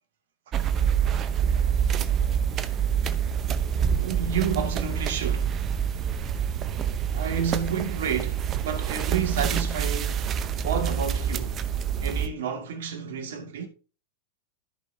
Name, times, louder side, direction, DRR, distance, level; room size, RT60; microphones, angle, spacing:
sound 1, 0.5-12.3, right 8 dB, 35° right, 0.9 m, -26 dB
voice 1, 4.0-5.6 7.1-10.2 10.6-11.6 12.0-13.7, right 7 dB, 70° right, 2.2 m, -30 dB
14.0 x 5.3 x 2.8 m
hypercardioid pair, 105°, 0 cm